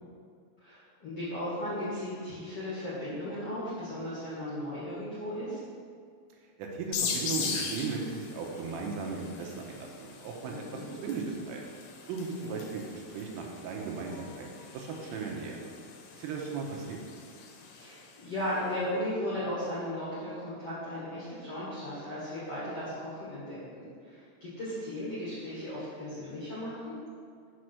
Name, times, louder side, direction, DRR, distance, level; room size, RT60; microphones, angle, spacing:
voice 1, 0.6-5.6 10.5-10.8 12.4-12.5 17.8-26.9, left 1 dB, 55° left, -10 dB, 1.7 m, -36 dB
voice 2, 6.6-11.7 12.1-14.5 14.7-15.6 16.1-17.0, right 4 dB, 80° right, 0 dB, 3.5 m, -36 dB
sound 1, 6.9-18.3, left 5 dB, 80° left, 2.6 m, -40 dB
7.0 x 6.0 x 6.5 m, 2.2 s
omnidirectional pair, 5.8 m